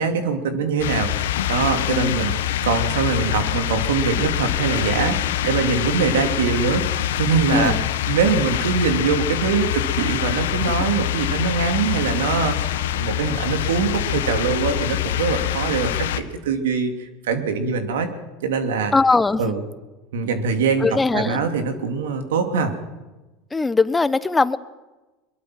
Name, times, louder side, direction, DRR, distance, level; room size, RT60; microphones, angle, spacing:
voice 1, 0.0-2.3 2.6-7.8 8.1-18.1 18.4-18.9 19.4-19.6 20.1-22.7, right 5 dB, 80° right, 6 dB, 2.9 m, -23 dB
sound 1, 0.8-16.2, left 12 dB, 80° left, 1.4 m, -24 dB
voice 2, 1.9-2.4 7.5-7.8 18.9-19.6 20.8-21.4 23.5-24.6, left 3 dB, 15° left, 14 dB, 1.2 m, -20 dB
23.0 x 22.5 x 6.1 m, 1.1 s
hypercardioid pair, 80°, 0 cm